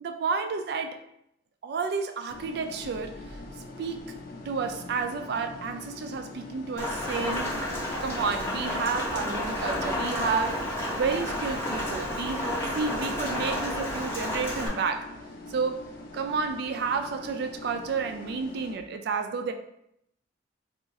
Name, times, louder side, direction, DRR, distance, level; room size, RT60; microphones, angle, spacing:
voice 1, 0.0-1.0 1.6-3.2 3.8-4.1 4.5-7.6 8.0-15.1 15.5-19.5, right 5 dB, 60° right, 7 dB, 0.3 m, -31 dB
sound 1, 2.3-18.7, left 2 dB, 50° left, 0.5 m, -43 dB
Rain, 6.8-14.7, left 1 dB, 15° left, 0.7 m, -31 dB
2.4 x 2.3 x 3.9 m, 0.77 s
head